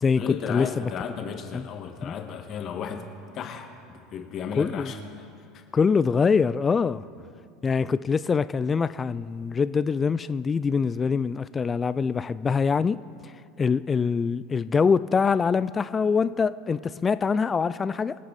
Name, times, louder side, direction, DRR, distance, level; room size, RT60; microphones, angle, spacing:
voice 1, 0.2-3.1 3.3-5.6, left 7 dB, 45° left, 5 dB, 1.6 m, -35 dB
voice 2, 4.6-4.9 5.7-7.0 7.6-13.0 13.6-18.2, left 5 dB, 25° left, 15 dB, 0.4 m, -24 dB
25.0 x 8.5 x 4.2 m, 2.6 s
hypercardioid pair, 75°, 0 cm